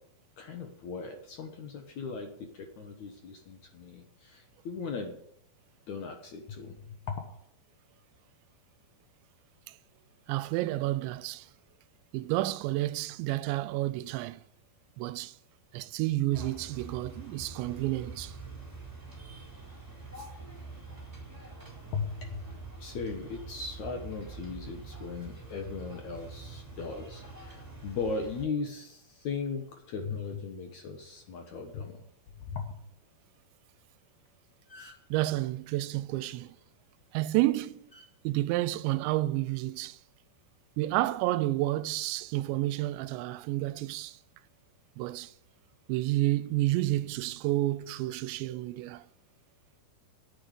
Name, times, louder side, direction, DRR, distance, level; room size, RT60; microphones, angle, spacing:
voice 1, 0.4-5.2 5.9-7.2 21.9-22.4 22.8-32.1 32.4-32.7, left 5 dB, 70° left, 1.7 m, -38 dB
voice 2, 10.3-11.5 12.1-14.4 15.0-15.3 15.7-18.4 35.1-36.6 37.1-37.8 38.2-40.0 40.8-44.2 45.0-45.3 45.9-49.1, right 17 dB, 85° right, 2.9 m, -30 dB
sound 1, 16.3-28.4, right 3 dB, 5° right, 3.0 m, -45 dB
sound 2, 34.1-34.3 34.5-35.2 36.8-37.0 37.9-38.1 39.1-39.4, left 2 dB, 50° left, 0.7 m, -52 dB
9.3 x 8.8 x 9.1 m
omnidirectional pair, 5.1 m